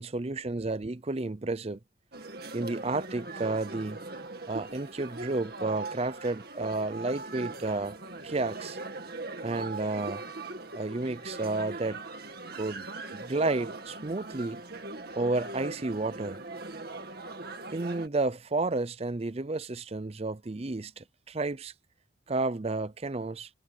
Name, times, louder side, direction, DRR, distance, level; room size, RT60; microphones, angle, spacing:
voice 1, 0.0-1.8 2.5-4.1 4.5-8.0 8.2-8.8 9.4-10.2 10.7-12.0 12.5-14.6 15.2-16.4 17.7-21.7 22.3-23.5, right 2 dB, 30° right, 0.6 m, -31 dB
sound 1, 2.1-18.1, right 3 dB, 50° right, 2.2 m, -40 dB
head